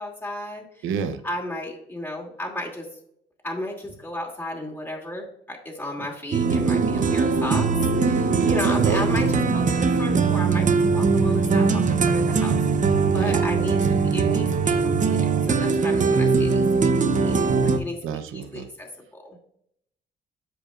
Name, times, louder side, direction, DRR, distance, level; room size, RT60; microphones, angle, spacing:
voice 1, 0.0-0.8 1.2-2.9 3.4-7.7 8.0-12.5 12.8-16.6 17.0-19.4, left 1 dB, 10° left, -2 dB, 2.6 m, -34 dB
voice 2, 0.8-1.2 6.9-7.2 8.3-9.0 13.2-13.4 18.0-18.7, right 7 dB, 85° right, 9 dB, 0.8 m, -29 dB
sound 1, 6.3-17.8, right 4 dB, 40° right, 0.8 m, -21 dB
13.5 x 5.1 x 2.5 m, 0.71 s
cardioid pair, 90°, 20 cm